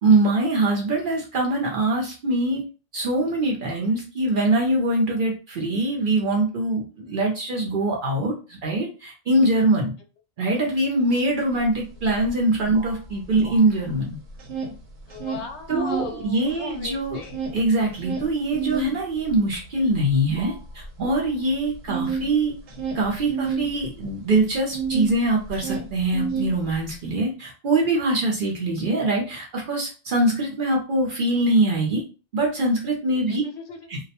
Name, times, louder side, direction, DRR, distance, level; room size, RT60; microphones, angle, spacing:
voice 1, 0.0-2.6 2.9-9.9 10.4-14.2 15.7-17.2 17.5-22.5 22.9-32.0 32.3-33.4 33.9-34.0, right 2 dB, 60° right, -1 dB, 0.6 m, -23 dB
sound 1, 11.6-11.7 12.0-14.0 14.3-16.1 16.5-25.2 25.4-27.0, right 5 dB, 85° right, 0.9 m, -31 dB
voice 2, 15.1-17.4 33.1-33.9, left 4 dB, 75° left, 4 dB, 0.8 m, -39 dB
2.2 x 2.1 x 2.7 m, 0.34 s
omnidirectional pair, 1.2 m